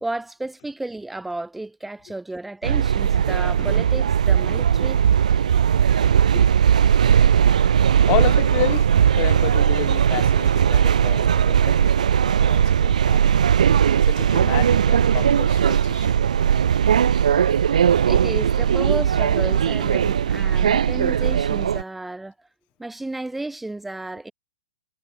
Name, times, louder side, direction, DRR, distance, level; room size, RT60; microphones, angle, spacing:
voice 1, 0.0-5.0 18.1-22.3 22.8-24.3, right 2 dB, 5° right, 0.5 m, -32 dB
sound 1, 2.6-21.8, right 8 dB, 75° right, 0.7 m, -18 dB
voice 2, 7.9-11.9 12.2-13.3 14.0-16.1, left 27 dB, 30° left, 2.3 m, -30 dB
hypercardioid pair, 150°, 4 cm